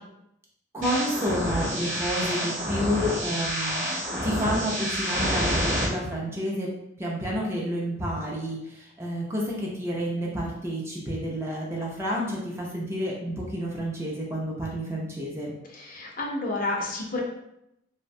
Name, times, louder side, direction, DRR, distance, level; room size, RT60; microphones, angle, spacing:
voice 1, 0.7-3.9 4.2-6.7 7.0-15.5, equal, 15° right, -4 dB, 0.4 m, -30 dB
sound 1, 0.8-5.8, equal, 40° right, 0.9 m, -28 dB
voice 2, 15.7-17.2, left 2 dB, 45° left, -2 dB, 0.5 m, -30 dB
2.6 x 2.1 x 2.5 m, 0.82 s
head